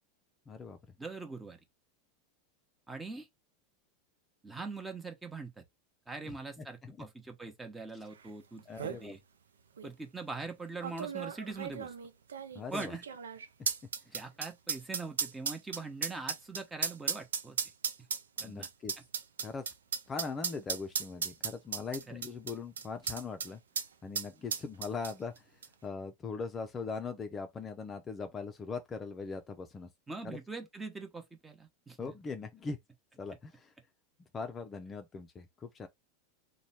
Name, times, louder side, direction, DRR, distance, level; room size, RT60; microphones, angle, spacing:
voice 1, 0.5-0.8 6.6-6.7 8.7-9.2 12.5-12.9 18.4-18.9 19.4-19.7 20.1-23.6 24.0-29.9 30.2-30.4 32.0-32.8 33.2-33.7 34.3-35.9, left 4 dB, 25° left, 0.5 m, -40 dB
voice 2, 1.0-1.6 2.9-3.3 4.4-5.6 6.1-9.2 9.8-11.9 12.7-13.0 14.1-17.6 18.4-18.7 22.1-22.2 30.1-32.1, right 3 dB, 15° right, 0.9 m, -42 dB
sound 1, 8.3-8.4 8.6-9.0 9.8-9.9 10.8-23.5 23.8-23.9 24.1-25.4 25.6-25.7, right 6 dB, 85° right, 0.5 m, -36 dB
3.1 x 2.3 x 4.1 m
hypercardioid pair, 100°, 0 cm